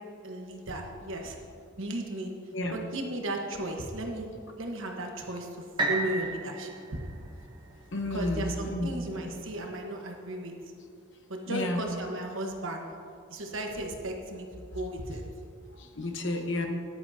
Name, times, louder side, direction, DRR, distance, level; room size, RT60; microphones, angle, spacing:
voice 1, 0.2-1.4 1.8-2.3 2.7-4.3 4.5-6.7 8.1-10.5 11.3-12.9 13.3-15.2, right 1 dB, 70° right, 2 dB, 1.2 m, -35 dB
sound 1, 5.8-9.7 10.3-10.4, right 2 dB, 20° right, 1.0 m, -35 dB
voice 2, 7.9-9.2 11.5-11.9 15.8-16.7, left 1 dB, 60° left, 4 dB, 1.0 m, -31 dB
14.0 x 10.5 x 2.8 m, 2.3 s
head